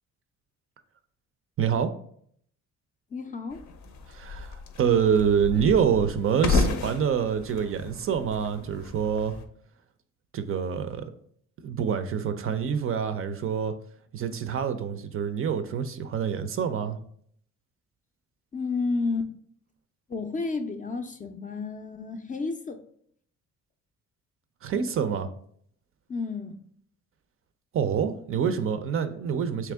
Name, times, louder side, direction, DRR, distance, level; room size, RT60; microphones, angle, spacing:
voice 1, 1.6-1.9 4.1-9.3 10.3-11.1 11.6-13.7 14.1-17.0 24.6-25.3 27.7-29.7, right 7 dB, 45° right, 0.4 m, -26 dB
voice 2, 3.1-3.7 18.5-19.3 20.1-22.8 26.1-26.6, left 4 dB, 25° left, 0.4 m, -31 dB
sound 1, 3.5-9.4, left 3 dB, 70° left, 0.6 m, -32 dB
3.5 x 2.9 x 3.4 m
cardioid pair, 90°, 30 cm